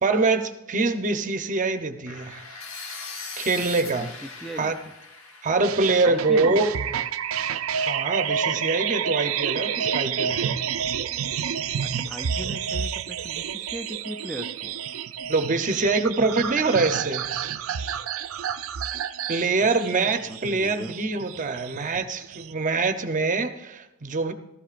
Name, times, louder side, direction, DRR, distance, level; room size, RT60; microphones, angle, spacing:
voice 1, 0.0-2.4 3.4-4.1 4.6-4.8 5.4-6.7 7.9-10.5 15.3-17.3 19.3-24.3, right 3 dB, 40° right, 7 dB, 0.7 m, -24 dB
sound 1, 2.1-8.0, left 4 dB, 75° left, 1.3 m, -41 dB
voice 2, 3.8-4.7 6.0-6.7 11.8-14.7 19.8-20.9, equal, ahead, 5 dB, 0.4 m, -38 dB
sound 2, 5.6-22.5, right 8 dB, 85° right, 0.5 m, -29 dB
16.0 x 14.0 x 2.5 m, 0.89 s
head